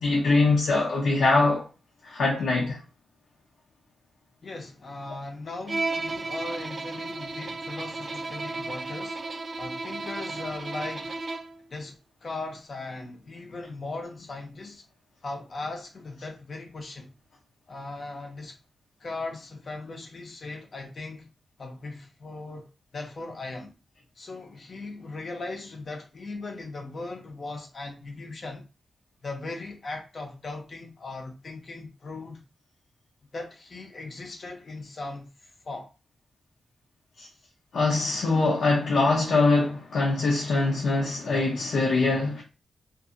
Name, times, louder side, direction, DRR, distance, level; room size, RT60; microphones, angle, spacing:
voice 1, 0.0-1.7 2.0-2.8 37.2-37.3 37.7-42.4, left 3 dB, 85° left, 0.7 m, -23 dB
voice 2, 4.4-9.2 9.6-11.2 11.7-14.8 15.2-17.1 17.7-18.6 19.0-21.3 21.6-23.7 24.2-28.6 29.2-32.4 33.3-35.9, left 3 dB, 45° left, 0.7 m, -38 dB
Bowed string instrument, 5.7-11.6, right 3 dB, 40° right, 0.3 m, -34 dB
2.7 x 2.6 x 2.5 m
wide cardioid pair, 140°, 0 cm